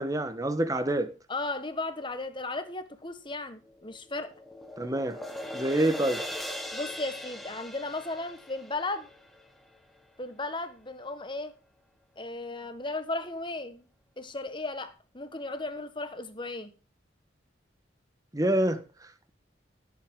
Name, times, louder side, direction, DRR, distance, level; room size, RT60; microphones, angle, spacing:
voice 1, 0.0-1.1 4.8-5.2 5.5-6.2 18.3-18.8, right 1 dB, 20° right, 1.2 m, -26 dB
voice 2, 1.3-4.3 6.7-9.1 10.2-11.5 12.2-13.9 14.2-16.7, left 2 dB, 25° left, 1.4 m, -35 dB
sound 1, 3.6-10.0, left 1 dB, ahead, 1.6 m, -40 dB
16.0 x 8.4 x 3.8 m
head